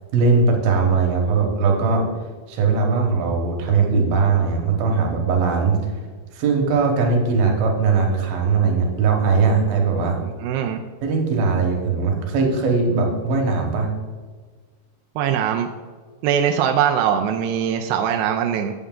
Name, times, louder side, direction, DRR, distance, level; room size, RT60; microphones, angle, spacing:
voice 1, 0.1-2.1 2.5-5.8 6.3-10.2 11.0-13.9, right 4 dB, 70° right, 2 dB, 2.9 m, -19 dB
voice 2, 10.2-10.8 15.2-15.7 16.2-18.7, right 8 dB, 90° right, 4 dB, 2.5 m, -21 dB
8.2 x 8.0 x 3.7 m, 1.5 s
omnidirectional pair, 4.5 m